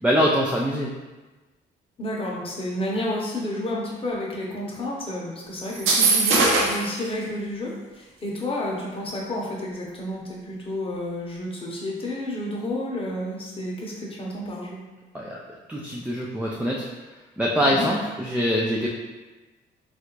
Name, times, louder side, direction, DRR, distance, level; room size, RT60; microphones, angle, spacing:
voice 1, 0.0-0.9 15.1-15.4 15.7-16.9 17.4-18.9, equal, 5° right, -3 dB, 0.4 m, -23 dB
voice 2, 2.0-14.8 17.7-17.8, left 1 dB, 25° left, -3 dB, 0.8 m, -30 dB
sound 1, 5.7-6.9, right 3 dB, 85° right, 0.6 m, -20 dB
3.2 x 2.5 x 3.0 m, 1.2 s
cardioid pair, 90°, 20 cm